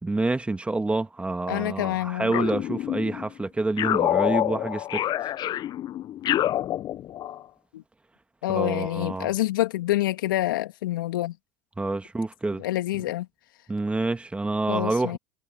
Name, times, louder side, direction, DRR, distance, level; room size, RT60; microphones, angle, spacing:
voice 1, 0.0-5.3 8.5-9.3 11.8-12.6 13.7-15.2, right 2 dB, 10° right, 2.0 m, -28 dB
voice 2, 1.5-2.4 7.7-7.8 8.4-11.3 12.6-13.3 14.7-15.2, left 15 dB, 70° left, 2.4 m, -27 dB
sound 1, 2.3-3.3 3.8-7.4, left 12 dB, 40° left, 1.1 m, -27 dB
hypercardioid pair, 85°, 11 cm